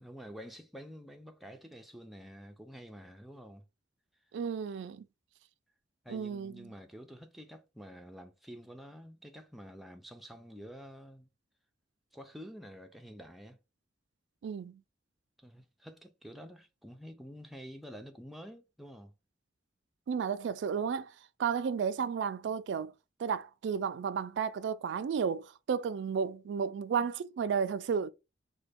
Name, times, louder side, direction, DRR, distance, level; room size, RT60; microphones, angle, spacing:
voice 1, 0.0-3.6 6.0-11.3 12.1-13.6 15.4-19.1, equal, ahead, 0.4 m, -49 dB
voice 2, 4.3-5.1 6.1-6.7 14.4-14.8 20.1-21.1 21.4-22.9 23.2-28.1, right 6 dB, 70° right, 0.3 m, -33 dB
3.8 x 2.2 x 3.4 m
head